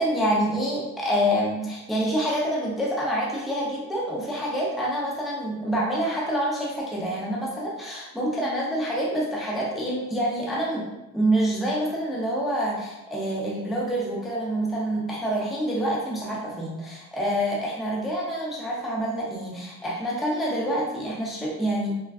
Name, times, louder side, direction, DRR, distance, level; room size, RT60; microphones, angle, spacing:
voice 1, 0.0-10.9 11.1-21.9, equal, ahead, -4 dB, 0.4 m, -27 dB
3.4 x 2.2 x 2.3 m, 0.95 s
wide cardioid pair, 140°, 38 cm